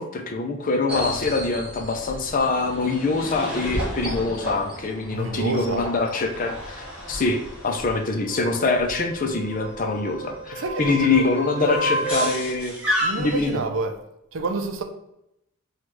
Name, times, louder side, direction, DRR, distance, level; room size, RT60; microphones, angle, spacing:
voice 1, 0.0-12.7 13.2-13.6, left 3 dB, 40° left, 0.5 m, -24 dB
sound 1, 0.9-13.5, equal, 5° right, 1.4 m, -31 dB
voice 2, 5.1-5.9 10.5-12.1 13.0-14.0 14.3-14.8, right 3 dB, 70° right, 0.5 m, -29 dB
6.0 x 2.4 x 3.2 m
head